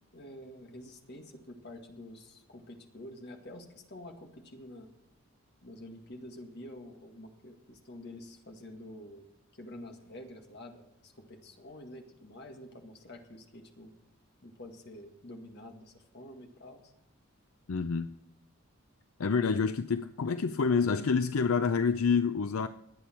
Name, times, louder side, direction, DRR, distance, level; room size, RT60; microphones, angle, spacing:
voice 1, 0.1-4.9 5.6-9.3 9.5-13.9 14.4-16.9, left 1 dB, 50° left, 1.9 m, -48 dB
voice 2, 17.7-18.1 19.2-22.7, left 5 dB, 80° left, 0.5 m, -27 dB
21.5 x 8.7 x 4.4 m
head